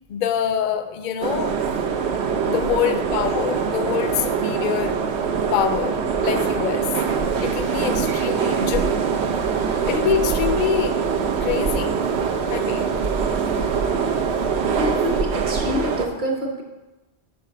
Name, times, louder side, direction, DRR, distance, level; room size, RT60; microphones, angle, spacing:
voice 1, 0.1-1.6 2.5-5.0 5.5-6.9 7.4-9.0 9.9-11.0 11.4-12.1 12.5-13.0, left 9 dB, 60° left, 0.6 m, -25 dB
sound 1, 1.2-16.1, right 6 dB, 80° right, 1.0 m, -23 dB
voice 2, 14.8-16.6, left 1 dB, 45° right, 1.3 m, -27 dB
5.6 x 4.9 x 6.5 m
omnidirectional pair, 1.1 m